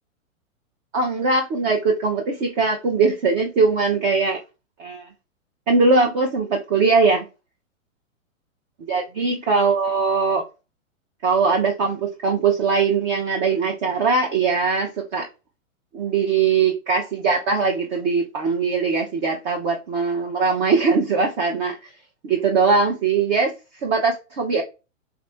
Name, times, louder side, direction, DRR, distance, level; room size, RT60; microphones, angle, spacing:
voice 1, 0.9-4.4 4.8-5.1 5.7-7.2 8.9-10.4 11.2-15.3 15.9-21.8 22.2-23.5 23.8-24.6, right 4 dB, 35° right, 0.6 m, -21 dB
3.4 x 2.5 x 3.2 m
hypercardioid pair, 125°, 40 cm